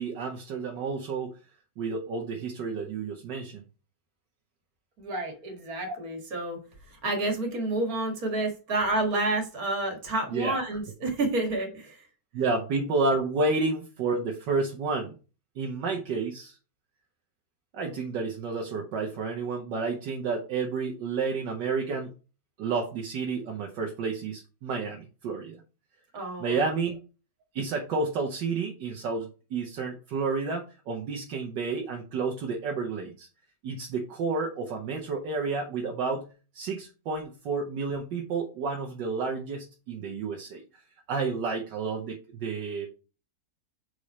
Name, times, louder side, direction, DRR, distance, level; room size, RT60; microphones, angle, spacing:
voice 1, 0.0-1.4 1.8-3.6 5.9-6.0 10.3-10.6 12.3-15.1 15.6-16.6 17.7-22.1 22.6-25.6 26.4-27.0 27.5-33.3 33.6-40.6 41.1-42.9, right 4 dB, 70° right, 2 dB, 1.6 m, -30 dB
voice 2, 5.0-6.6 6.9-12.1 26.1-26.7, right 2 dB, 50° right, 3 dB, 2.1 m, -29 dB
6.3 x 4.9 x 4.2 m, 0.35 s
omnidirectional pair, 2.0 m